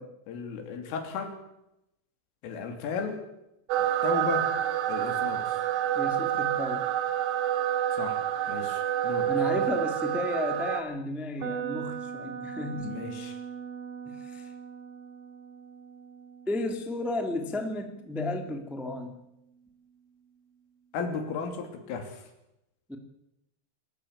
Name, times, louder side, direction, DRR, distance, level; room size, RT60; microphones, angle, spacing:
voice 1, 0.3-1.4 2.4-3.2 4.0-4.5 4.9-5.6 7.9-8.2 8.5-9.3 12.7-13.4 20.9-22.2, left 5 dB, 85° left, 5 dB, 5.5 m, -35 dB
sound 1, 3.7-10.8, right 11 dB, 70° right, 3.4 m, -28 dB
voice 2, 5.9-6.8 9.3-12.9 14.2-14.5 16.5-19.2 22.9-23.0, left 2 dB, ahead, 4 dB, 1.0 m, -33 dB
sound 2, 11.4-19.3, right 7 dB, 45° right, 3.5 m, -41 dB
25.5 x 14.0 x 8.8 m, 0.87 s
omnidirectional pair, 5.7 m